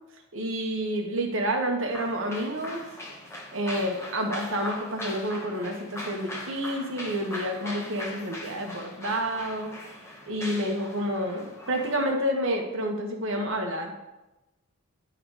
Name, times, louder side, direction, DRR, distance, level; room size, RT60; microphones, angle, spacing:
voice 1, 0.3-2.8 3.5-9.7 10.3-13.9, equal, 60° right, 2 dB, 1.4 m, -29 dB
sound 1, 1.9-12.2, left 1 dB, 15° left, 1.3 m, -40 dB
11.0 x 4.0 x 4.9 m, 0.97 s
head